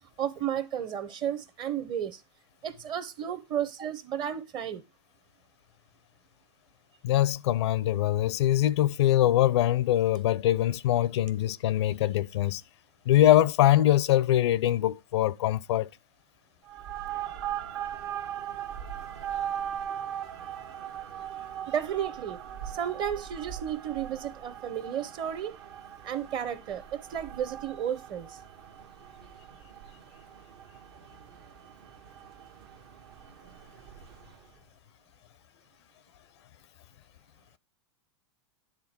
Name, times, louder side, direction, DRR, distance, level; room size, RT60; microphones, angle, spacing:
voice 1, 0.2-2.2 2.6-4.8 21.7-22.4 22.7-25.5 26.0-28.4, right 9 dB, 30° right, 0.9 m, -33 dB
voice 2, 7.0-12.6 13.1-15.9, left 13 dB, 70° left, 0.5 m, -23 dB
sound 1, 16.6-34.6, right 10 dB, 60° right, 1.3 m, -40 dB
9.7 x 3.6 x 4.3 m
hypercardioid pair, 125°, 15 cm